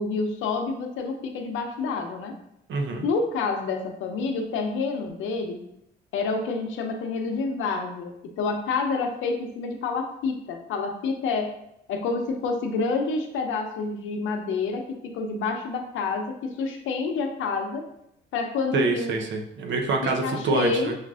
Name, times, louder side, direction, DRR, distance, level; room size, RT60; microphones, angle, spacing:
voice 1, 0.0-2.4 3.0-5.6 6.1-11.5 11.9-17.8 18.3-19.2 20.0-20.9, left 4 dB, 85° left, 4 dB, 0.6 m, -28 dB
voice 2, 2.7-3.1 18.7-20.9, right 3 dB, 65° right, 3 dB, 0.7 m, -26 dB
6.3 x 2.4 x 2.4 m, 0.78 s
cardioid pair, 90°, 20 cm